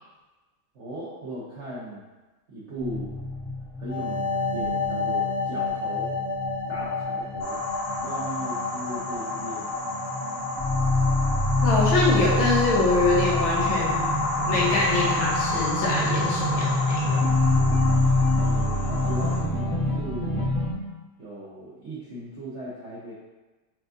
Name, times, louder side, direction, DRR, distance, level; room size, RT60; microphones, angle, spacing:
voice 1, 0.7-2.0 2.5-3.2 3.8-6.1 6.7-7.6 8.0-9.7 18.4-20.5 21.2-23.1, right 1 dB, 70° right, -8 dB, 0.7 m, -37 dB
sound 1, 2.8-20.7, left 2 dB, 20° right, 0.3 m, -26 dB
sound 2, 7.4-19.4, left 2 dB, 55° left, 0.9 m, -30 dB
voice 2, 11.6-14.0 14.5-17.2, left 2 dB, 80° left, -4 dB, 1.7 m, -24 dB
5.7 x 2.4 x 2.6 m, 1.2 s
omnidirectional pair, 2.2 m